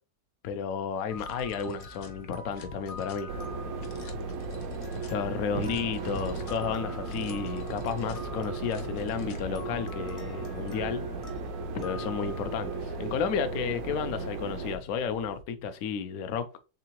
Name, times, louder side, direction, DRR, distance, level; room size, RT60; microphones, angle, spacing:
voice 1, 0.4-3.3 5.1-11.0 11.7-16.5, left 7 dB, 80° left, 0.7 m, -32 dB
sound 1, 1.1-15.4, left 2 dB, 65° left, 1.0 m, -47 dB
sound 2, 1.1-12.8, left 2 dB, 35° left, 0.5 m, -48 dB
sound 3, 3.3-14.8, right 4 dB, 75° right, 0.8 m, -36 dB
3.8 x 3.4 x 2.9 m
omnidirectional pair, 2.1 m